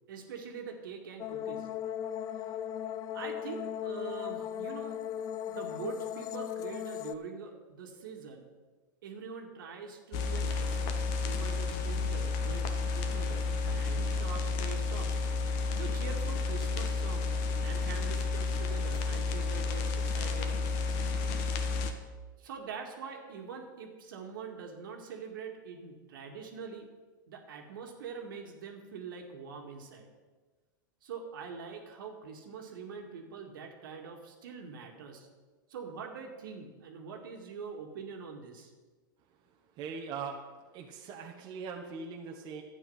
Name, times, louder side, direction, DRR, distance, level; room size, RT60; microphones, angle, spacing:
voice 1, 0.1-1.7 3.1-5.0 5.5-8.5 9.0-11.0 11.2-15.3 15.7-20.7 22.4-26.9 27.3-30.1 31.0-35.3 35.7-38.7, right 5 dB, 75° right, 3 dB, 2.2 m, -44 dB
sound 1, 1.2-7.1, left 10 dB, 35° left, 0.6 m, -37 dB
sound 2, 10.1-21.9, left 4 dB, 50° left, 1.5 m, -31 dB
voice 2, 39.8-40.4 40.7-42.6, right 5 dB, 40° right, 2 dB, 1.4 m, -40 dB
11.5 x 9.3 x 5.7 m, 1.3 s
hypercardioid pair, 115°, 11 cm